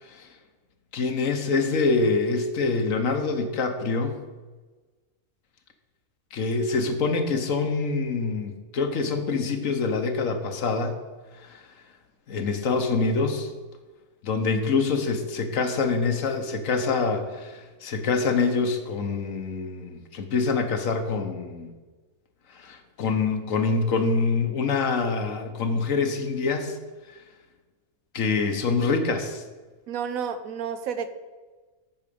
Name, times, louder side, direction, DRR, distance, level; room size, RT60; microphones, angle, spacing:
voice 1, 0.9-4.2 6.3-11.0 11.4-11.6 12.3-13.5 14.2-21.7 22.5-26.8 28.1-29.4, left 4 dB, 65° left, 6 dB, 1.3 m, -25 dB
voice 2, 29.9-31.1, right 7 dB, 75° right, 10 dB, 1.1 m, -30 dB
8.5 x 4.8 x 6.8 m, 1.3 s
omnidirectional pair, 1.5 m